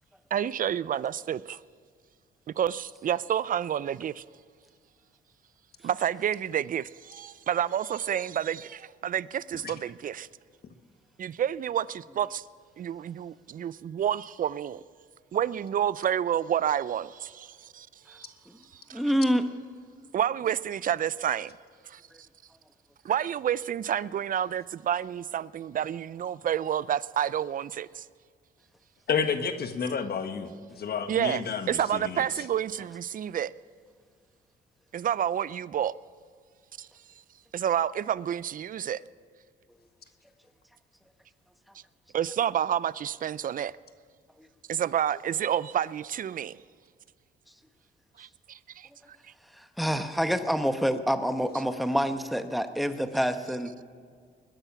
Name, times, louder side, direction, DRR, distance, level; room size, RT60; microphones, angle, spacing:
voice 1, 0.3-1.6 2.6-4.2 5.8-10.3 11.2-12.5 12.8-14.8 15.3-18.3 18.7-19.0 20.1-21.5 21.9-22.0 23.0-28.1 31.1-33.5 34.9-35.9 36.8-36.9 37.5-39.0 41.7-41.8 42.1-43.7 44.7-46.6 48.2-48.9 49.2-49.3, right 9 dB, 45° right, 0.5 m, -29 dB
voice 2, 18.9-19.5 49.8-53.7, equal, ahead, 1.1 m, -26 dB
voice 3, 29.1-32.2, left 6 dB, 50° left, 1.4 m, -30 dB
21.5 x 10.0 x 6.0 m
cardioid pair, 90°, 20 cm